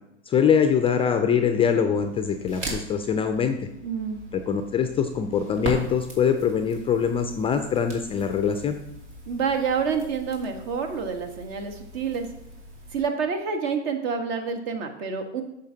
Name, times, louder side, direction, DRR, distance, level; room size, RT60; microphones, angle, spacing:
voice 1, 0.3-3.7 4.3-8.8, left 7 dB, 15° left, 7 dB, 0.3 m, -23 dB
Crackle, 2.0-13.0, right 1 dB, 80° right, 2.6 m, -40 dB
voice 2, 3.8-4.2 9.3-12.3 12.9-15.4, right 6 dB, 60° right, 5 dB, 1.4 m, -28 dB
9.0 x 6.6 x 2.8 m, 0.83 s
hypercardioid pair, 105°, 35 cm